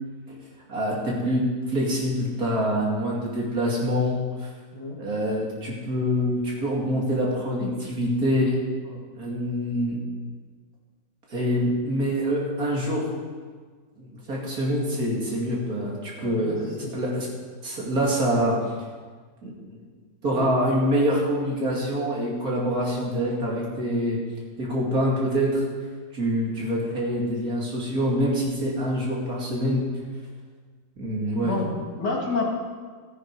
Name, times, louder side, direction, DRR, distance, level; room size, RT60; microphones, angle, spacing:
voice 1, 0.7-4.1 5.0-8.5 9.1-10.0 11.3-13.0 14.0-17.3 17.6-18.6 19.4-19.8 20.2-24.2 24.6-25.6 26.1-29.8 31.0-31.5, equal, 60° right, -3 dB, 3.0 m, -25 dB
voice 2, 16.2-17.0 20.3-20.5 31.4-32.5, left 3 dB, 85° left, -2 dB, 3.0 m, -30 dB
14.0 x 10.5 x 4.8 m, 1.5 s
omnidirectional pair, 1.8 m